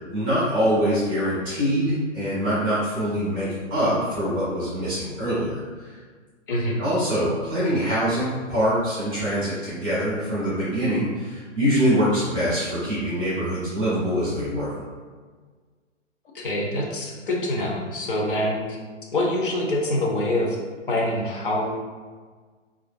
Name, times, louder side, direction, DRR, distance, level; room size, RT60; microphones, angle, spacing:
voice 1, 0.1-5.9 6.8-14.8, equal, 10° right, -13 dB, 0.4 m, -24 dB
voice 2, 6.5-6.8 16.3-18.8 19.1-20.6 20.9-21.7, left 1 dB, 45° left, -2 dB, 0.6 m, -25 dB
3.1 x 2.4 x 2.4 m, 1.5 s
figure-of-eight pair, 125°, 37 cm